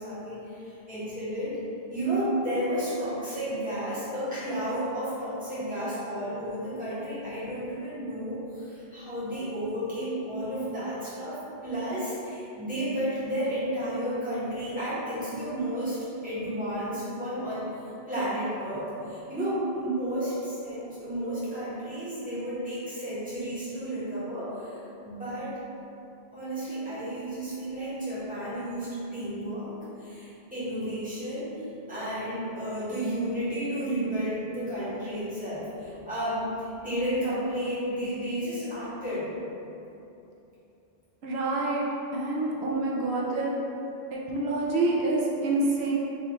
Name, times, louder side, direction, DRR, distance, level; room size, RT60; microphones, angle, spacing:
voice 1, 0.0-1.6 1.9-16.0 16.2-17.7 18.1-25.6 26.3-39.3, right 1 dB, 10° right, -14 dB, 1.4 m, -32 dB
voice 2, 41.2-41.9 42.1-43.5 44.1-45.9, right 2 dB, 90° right, -4 dB, 0.8 m, -27 dB
3.9 x 2.9 x 3.0 m, 2.9 s
omnidirectional pair, 1.1 m